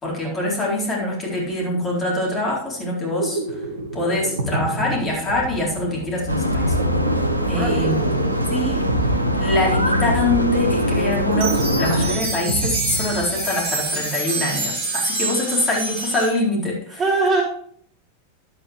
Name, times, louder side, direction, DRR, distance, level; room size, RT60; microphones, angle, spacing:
voice 1, 0.0-3.4 3.9-6.8 7.5-8.0 8.5-8.8 9.4-17.0, left 2 dB, 20° left, -3 dB, 4.0 m, -24 dB
sound 1, 2.9-13.7, right 2 dB, 70° right, 1.4 m, -28 dB
sound 2, 6.3-12.2, equal, 85° right, 0.8 m, -22 dB
voice 2, 7.4-7.9 17.0-17.4, right 3 dB, 20° right, 1 dB, 1.3 m, -22 dB
sound 3, 11.3-16.3, right 3 dB, 50° right, 4.5 m, -27 dB
11.0 x 8.4 x 3.1 m, 0.62 s
figure-of-eight pair, 90°, 0 cm